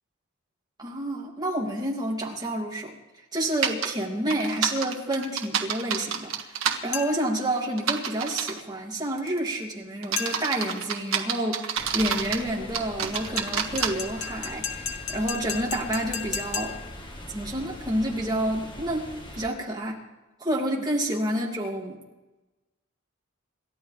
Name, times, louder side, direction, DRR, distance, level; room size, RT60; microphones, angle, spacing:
voice 1, 0.8-2.9 3.3-16.8 17.3-19.1 19.3-20.0 20.4-22.0, right 1 dB, 20° right, -2 dB, 2.8 m, -29 dB
sound 1, 3.6-3.9 4.3-6.8 7.8-8.6 9.2-9.5 10.0-12.4 12.7-13.9, right 7 dB, 70° right, 1.6 m, -28 dB
sound 2, 6.9-7.4 10.2-10.7 13.1-17.0, left 8 dB, 80° left, 1.4 m, -35 dB
sound 3, 11.8-19.5, equal, 20° left, 1.7 m, -42 dB
28.0 x 13.0 x 3.5 m, 1.1 s
head